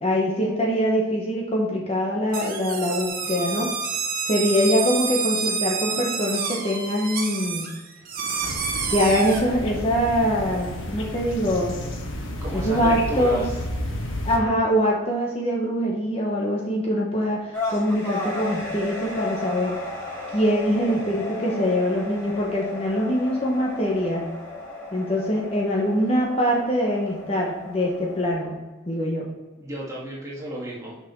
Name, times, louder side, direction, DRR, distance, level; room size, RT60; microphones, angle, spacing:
voice 1, 0.0-3.7 4.3-7.7 8.9-11.8 12.5-13.4 14.2-19.8 20.3-24.3 24.9-28.6 28.8-29.3, equal, 30° left, -2 dB, 1.1 m, -23 dB
sound 1, 2.3-9.4, right 5 dB, 45° right, 1.2 m, -28 dB
sound 2, 8.4-14.4, left 1 dB, 70° left, 1.2 m, -32 dB
voice 2, 12.4-13.5 29.6-31.0, right 1 dB, 15° right, -5 dB, 1.9 m, -32 dB
sound 3, 17.5-28.3, left 2 dB, 10° left, 2.3 m, -34 dB
6.8 x 5.6 x 4.7 m, 1.2 s
head